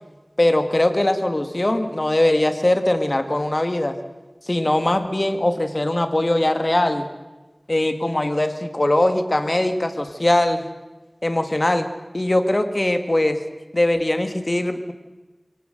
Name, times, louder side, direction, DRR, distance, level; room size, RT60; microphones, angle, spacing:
voice 1, 0.4-4.0 4.5-7.1 7.7-10.7 11.2-11.9 12.1-13.4 13.7-14.9, left 1 dB, 45° left, 8 dB, 2.0 m, -21 dB
24.0 x 17.0 x 7.9 m, 1.1 s
wide cardioid pair, 40°, 0 cm